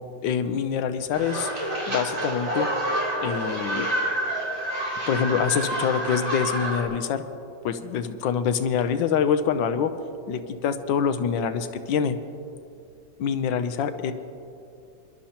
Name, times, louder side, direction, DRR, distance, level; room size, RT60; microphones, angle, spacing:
voice 1, 0.2-1.5 1.9-2.7 3.2-3.9 5.1-7.2 7.6-9.9 10.3-12.1 13.2-14.1, left 7 dB, 90° left, 10 dB, 1.4 m, -25 dB
sound 1, 1.1-6.8, right 1 dB, 20° right, 3.0 m, -28 dB
26.0 x 11.5 x 2.9 m, 2.6 s
omnidirectional pair, 2.0 m